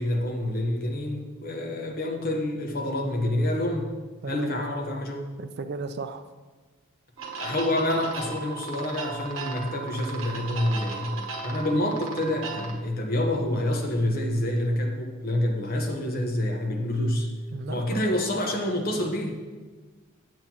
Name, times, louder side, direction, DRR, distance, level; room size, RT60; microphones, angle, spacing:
voice 1, 0.0-3.9 4.3-5.2 7.4-11.2 11.4-17.3 17.7-19.3, left 1 dB, 45° left, 2 dB, 1.0 m, -27 dB
voice 2, 4.2-4.7 5.4-6.2 17.5-18.0, right 4 dB, 50° right, 8 dB, 0.4 m, -35 dB
sound 1, 7.2-12.7, right 4 dB, 70° right, 1.2 m, -36 dB
9.0 x 7.9 x 2.9 m, 1.4 s
head